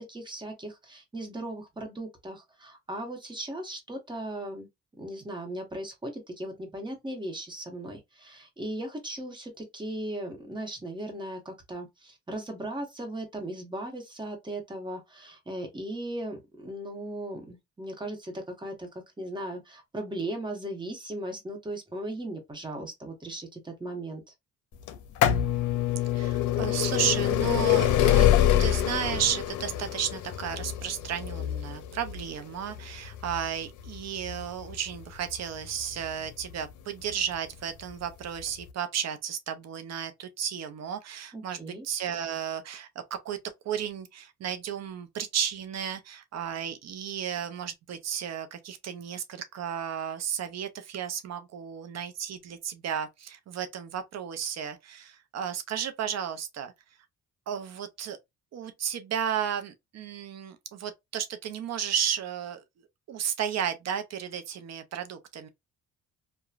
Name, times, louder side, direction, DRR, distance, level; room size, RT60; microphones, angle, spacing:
voice 1, 0.1-4.7 5.0-18.9 19.2-24.2 41.3-41.8, right 1 dB, 15° right, 1.1 m, -37 dB
sound 1, 24.9-36.5 37.3-37.4 38.4-38.5 38.7-38.8, left 11 dB, 80° left, 0.6 m, -26 dB
voice 2, 26.1-28.3 28.6-41.6 41.8-43.4 43.6-56.7 57.5-58.2 58.5-62.6 63.1-65.5, right 9 dB, 60° right, 0.6 m, -33 dB
2.9 x 2.2 x 2.4 m
cardioid pair, 90°, 30 cm